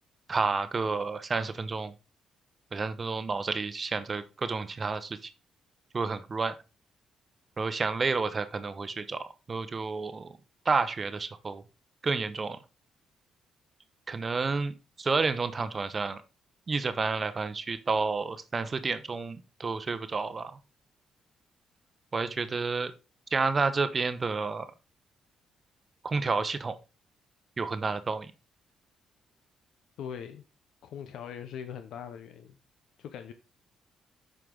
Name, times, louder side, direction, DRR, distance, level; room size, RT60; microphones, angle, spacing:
voice 1, 0.3-1.9 2.7-5.3 5.9-6.5 7.6-10.3 10.7-11.6 12.0-12.6 14.1-16.2 16.7-20.5 22.1-22.9 23.3-24.7 26.0-26.8 27.6-28.3, right 4 dB, 35° right, 0.7 m, -30 dB
voice 2, 30.0-30.4 30.8-32.5 33.0-33.3, left 8 dB, 75° left, 0.6 m, -41 dB
7.7 x 4.9 x 3.7 m
cardioid pair, 90°, 0 cm